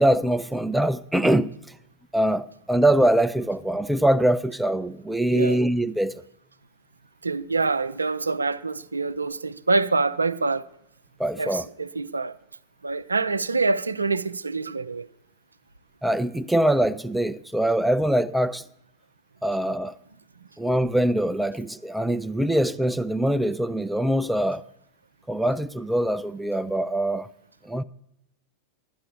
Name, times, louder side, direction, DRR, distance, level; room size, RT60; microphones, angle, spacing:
voice 1, 0.0-1.5 2.1-6.1 11.2-11.6 16.0-18.6 19.4-19.9 20.6-24.6 25.3-27.3 27.7-27.8, right 1 dB, 5° right, 0.4 m, -23 dB
voice 2, 7.2-10.7 11.4-12.4 12.8-15.1, right 3 dB, 80° right, 0.5 m, -26 dB
12.0 x 10.5 x 7.2 m
figure-of-eight pair, 90°, 0 cm